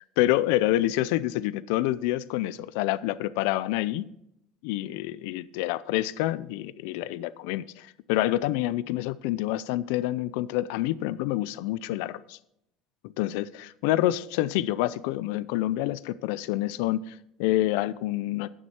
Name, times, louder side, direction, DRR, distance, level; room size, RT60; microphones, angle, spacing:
voice 1, 0.2-4.0 4.6-12.4 13.2-18.5, left 15 dB, 80° left, 0.4 m, -27 dB
11.0 x 9.4 x 4.4 m
cardioid pair, 170°, 0 cm